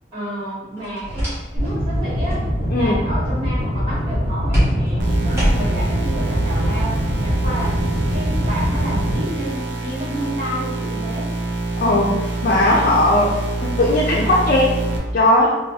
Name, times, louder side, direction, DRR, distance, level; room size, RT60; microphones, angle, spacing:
voice 1, 0.1-2.4 2.7-11.3, equal, 30° right, -10 dB, 1.3 m, -30 dB
sound 1, 0.8-1.8 2.1-2.4 4.5-5.9, equal, 15° right, 1.1 m, -23 dB
sound 2, 1.6-9.2, equal, 50° right, 0.8 m, -23 dB
sound 3, 5.0-15.0, right 2 dB, 80° right, 0.5 m, -25 dB
voice 2, 11.8-14.8 15.1-15.6, left 1 dB, 50° left, -4 dB, 0.3 m, -17 dB
3.0 x 2.0 x 2.6 m, 1.1 s
head